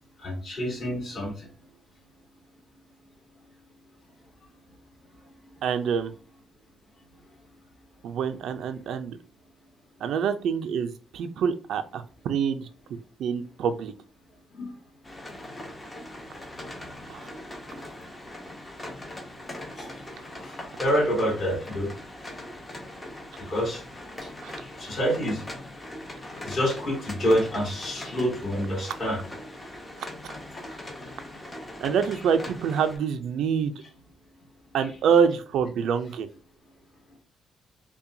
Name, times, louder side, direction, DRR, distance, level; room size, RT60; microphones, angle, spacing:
voice 1, 0.2-1.5 14.5-14.7 19.8-21.9 23.5-23.8 24.6-25.4 26.4-29.2, equal, 35° left, -4 dB, 2.0 m, -27 dB
voice 2, 5.6-6.1 8.0-9.2 10.0-12.7 13.2-13.9 17.1-17.3 24.4-24.6 30.0-30.3 31.8-33.7 34.7-36.3, right 7 dB, 70° right, 8 dB, 0.4 m, -26 dB
sound 1, 15.0-33.0, left 1 dB, 15° left, 0.7 m, -41 dB
5.4 x 2.2 x 2.6 m, 0.36 s
cardioid pair, 160°, 0 cm